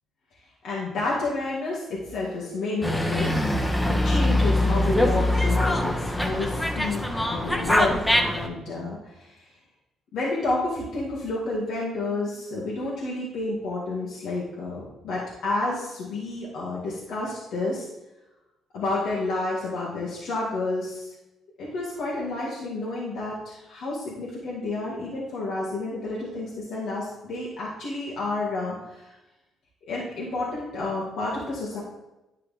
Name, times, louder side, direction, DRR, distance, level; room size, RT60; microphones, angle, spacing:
voice 1, 0.6-3.3 4.0-9.5 10.1-17.9 18.7-21.1 21.6-29.1 29.8-31.8, left 2 dB, 75° left, -6 dB, 2.2 m, -30 dB
Dog, 2.8-8.5, left 1 dB, 10° left, 1.1 m, -23 dB
11.0 x 5.7 x 3.6 m, 0.97 s
cardioid pair, 90°, 0 cm